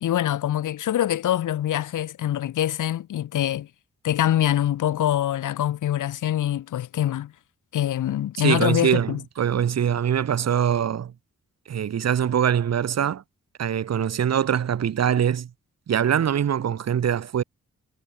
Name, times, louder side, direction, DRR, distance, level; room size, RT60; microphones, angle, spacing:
voice 1, 0.0-3.7 4.0-7.3 7.7-9.2, left 12 dB, 85° left, 0.8 m, -24 dB
voice 2, 8.4-11.1 11.7-13.2 13.6-15.5 15.9-17.4, right 9 dB, 60° right, 1.2 m, -23 dB
wide cardioid pair, 125°, 30 cm